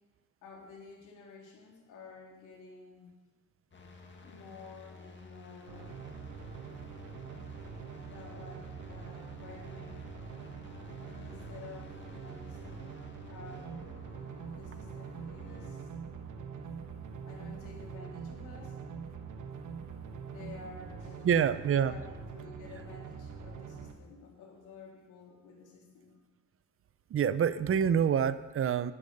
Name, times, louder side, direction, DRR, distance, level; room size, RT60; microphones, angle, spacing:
voice 1, 0.4-3.1 4.2-6.0 8.1-10.1 11.0-12.9 13.3-13.9 14.5-15.8 17.2-18.8 20.2-21.3 21.8-26.2, left 4 dB, 85° left, -1 dB, 3.2 m, -51 dB
sound 1, 3.7-15.8, left 2 dB, 40° left, 2.0 m, -54 dB
sound 2, 5.7-23.9, right 6 dB, 80° right, 1.3 m, -44 dB
voice 2, 21.2-21.9 27.1-28.9, right 8 dB, 45° right, 15 dB, 0.6 m, -26 dB
11.5 x 10.5 x 5.4 m, 1.2 s
cardioid pair, 90°, 30 cm